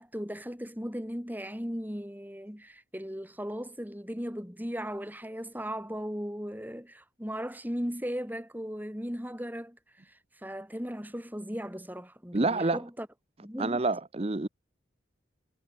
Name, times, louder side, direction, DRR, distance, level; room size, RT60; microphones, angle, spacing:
voice 1, 0.0-9.8 10.0-13.1 13.4-13.8, equal, 10° right, 7.0 m, -37 dB
voice 2, 12.3-12.8 13.6-14.5, right 2 dB, 30° right, 0.7 m, -27 dB
head